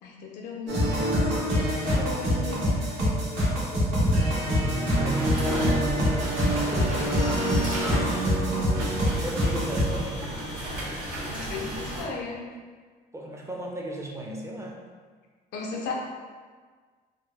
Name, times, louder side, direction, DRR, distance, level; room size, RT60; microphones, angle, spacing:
voice 1, 0.0-2.7 6.6-7.2 11.3-12.5 15.5-15.9, left 4 dB, 80° left, -1 dB, 0.5 m, -36 dB
sound 1, 0.7-10.0, equal, 85° right, 1.3 m, -25 dB
voice 2, 4.4-6.1 6.4-7.1 9.2-10.4 13.1-14.8, right 1 dB, 15° right, -2 dB, 0.5 m, -36 dB
sound 2, 5.1-12.0, right 1 dB, 55° right, 1.3 m, -34 dB
3.6 x 2.0 x 3.1 m, 1.5 s
cardioid pair, 110°, 17 cm